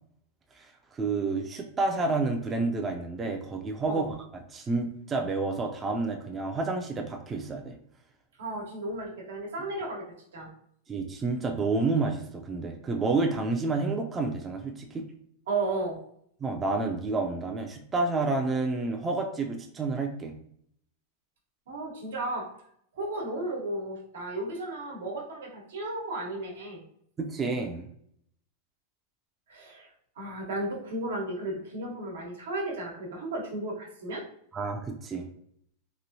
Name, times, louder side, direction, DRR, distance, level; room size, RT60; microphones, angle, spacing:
voice 1, 0.9-4.1 4.5-7.8 10.9-15.0 16.4-20.3 27.2-27.9 34.5-35.3, right 3 dB, 15° right, 2 dB, 0.3 m, -29 dB
voice 2, 8.4-10.0 10.3-10.5 15.5-16.0 21.7-22.5 22.9-26.8 29.5-29.9 30.2-34.2, right 2 dB, 90° right, -1 dB, 1.1 m, -34 dB
3.0 x 2.6 x 2.6 m, 0.67 s
supercardioid pair, 150°, 0 cm